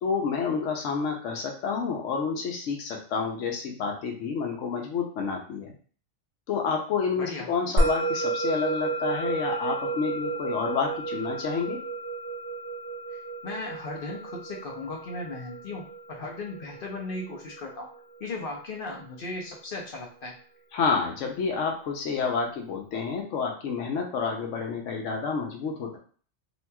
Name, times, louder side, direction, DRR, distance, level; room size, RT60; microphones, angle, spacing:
voice 1, 0.0-5.7 6.5-11.8 20.7-26.0, left 5 dB, 85° left, 2 dB, 1.0 m, -29 dB
voice 2, 7.2-7.5 13.4-17.9 18.2-20.3, left 2 dB, 55° left, -1 dB, 0.7 m, -37 dB
Musical instrument, 7.8-18.4, right 2 dB, 70° right, 0.8 m, -31 dB
2.9 x 2.8 x 2.2 m, 0.43 s
omnidirectional pair, 1.2 m